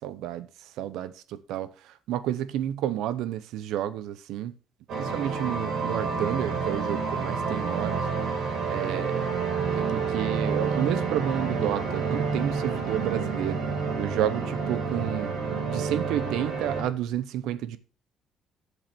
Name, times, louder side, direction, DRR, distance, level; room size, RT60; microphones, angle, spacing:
voice 1, 0.0-4.5 5.0-8.1 8.7-9.2 9.7-13.6 14.0-15.3 15.7-17.8, right 11 dB, 85° right, 0.8 m, -30 dB
sound 1, 4.9-16.8, right 5 dB, 70° right, 5.6 m, -29 dB
8.1 x 7.3 x 6.0 m
cardioid pair, 135°, 0 cm